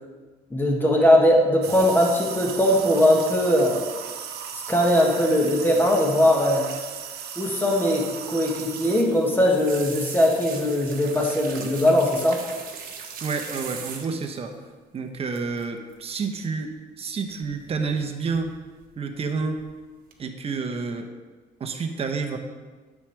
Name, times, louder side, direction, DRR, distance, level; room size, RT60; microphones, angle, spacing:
voice 1, 0.5-3.8 4.7-6.7 7.4-12.4, left 1 dB, 10° left, -1 dB, 1.7 m, -20 dB
sound 1, 1.6-9.0, right 8 dB, 70° right, 1.0 m, -36 dB
sound 2, 8.8-14.4 15.3-15.6 15.9-16.2 17.4-18.0 18.3-18.9 19.3-19.7 20.1-20.2, right 6 dB, 55° right, 1.2 m, -39 dB
voice 2, 13.2-14.5 14.9-18.6 19.0-19.7 20.2-21.1 21.6-22.4, right 4 dB, 35° right, 5 dB, 1.0 m, -29 dB
9.7 x 7.4 x 3.4 m, 1.4 s
cardioid pair, 110°, 17 cm